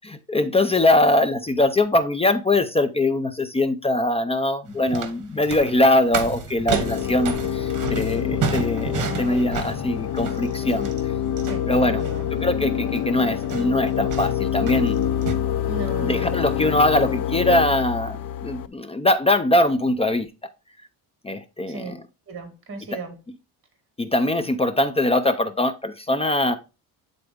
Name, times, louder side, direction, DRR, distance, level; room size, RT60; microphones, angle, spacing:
voice 1, 0.0-10.9 11.6-12.0 12.3-15.0 16.0-20.3 21.2-22.0 24.0-26.6, left 1 dB, 15° left, 10 dB, 0.5 m, -22 dB
Noisy Neighbors Real, 4.7-15.3, right 6 dB, 50° right, 1.3 m, -32 dB
sound 1, 6.7-18.7, left 10 dB, 60° left, 0.7 m, -26 dB
voice 2, 11.4-12.3 15.7-16.3 21.7-21.9 22.3-23.2, right 3 dB, 35° right, 6 dB, 2.2 m, -36 dB
8.9 x 3.9 x 3.5 m, 0.28 s
cardioid pair, 130°, 38 cm